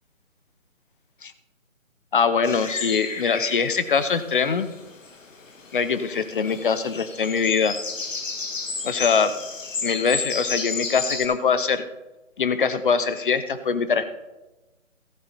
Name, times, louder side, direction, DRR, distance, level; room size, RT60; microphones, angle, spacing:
voice 1, 2.1-4.7 5.7-7.7 8.8-9.3 9.8-11.8 12.4-14.0, left 5 dB, 40° left, 12 dB, 0.8 m, -23 dB
sound 1, 2.4-11.3, left 4 dB, 70° left, 1.6 m, -33 dB
14.5 x 8.0 x 4.1 m, 1.0 s
figure-of-eight pair, 155°, 40 cm